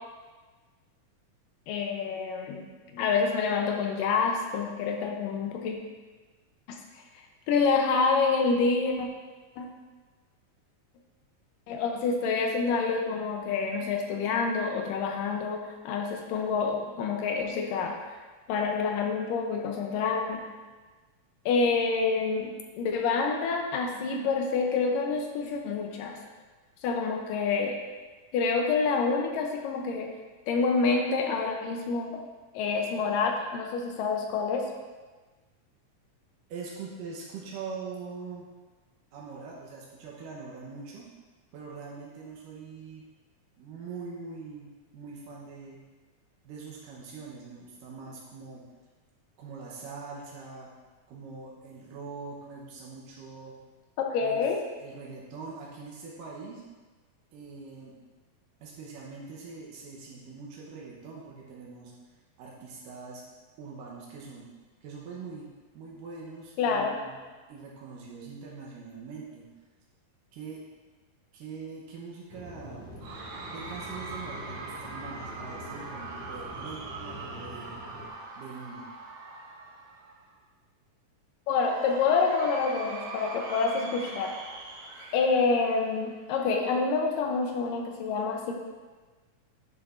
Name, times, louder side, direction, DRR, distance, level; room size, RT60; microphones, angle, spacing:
voice 1, 1.7-2.7 2.9-5.8 7.5-9.1 9.6-9.7 11.7-18.0 18.5-20.4 21.5-26.2 26.8-27.8 28.3-30.1 30.5-32.2 32.5-34.7 54.1-54.6 66.6-67.0 81.5-84.3 85.1-88.5, left 4 dB, 90° left, 2 dB, 2.4 m, -27 dB
voice 2, 36.5-38.5 39.1-41.1 41.5-43.1 43.6-44.7 44.9-45.8 46.4-48.6 49.4-50.7 51.1-53.6 54.2-54.4 54.8-56.6 57.3-57.9 58.6-61.9 62.4-63.2 63.6-64.5 64.8-65.5 65.7-67.2 67.5-69.5 70.3-70.6 71.3-72.9 73.5-77.7 78.4-78.9, right 4 dB, 85° right, -4 dB, 2.6 m, -43 dB
sound 1, 72.3-78.1, left 1 dB, 65° left, 3.6 m, -44 dB
Cheering / Crowd, 73.0-80.3 81.6-86.3, right 3 dB, 65° right, 1.5 m, -42 dB
10.0 x 7.0 x 2.6 m, 1.3 s
omnidirectional pair, 3.8 m